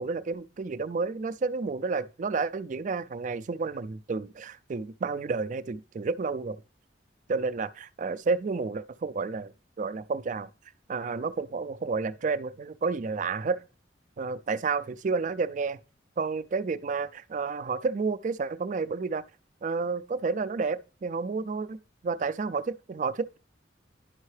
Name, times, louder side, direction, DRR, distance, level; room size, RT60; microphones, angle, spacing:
voice 1, 0.0-6.6 7.3-9.5 9.8-10.5 10.9-13.6 14.2-15.8 16.2-19.2 19.6-21.8 22.0-23.4, right 4 dB, 40° right, 0.4 m, -30 dB
10.5 x 5.5 x 3.2 m
head